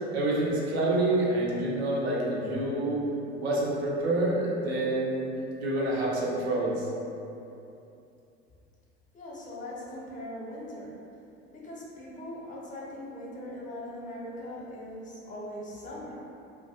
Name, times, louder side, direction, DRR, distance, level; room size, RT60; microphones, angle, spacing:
voice 1, 0.1-3.0 3.4-5.3 5.6-6.9, right 2 dB, 75° right, -5 dB, 0.6 m, -27 dB
voice 2, 9.1-11.0 11.5-16.2, left 1 dB, 25° left, -5 dB, 0.6 m, -40 dB
2.2 x 2.2 x 2.7 m, 2.7 s
figure-of-eight pair, 65°, 32 cm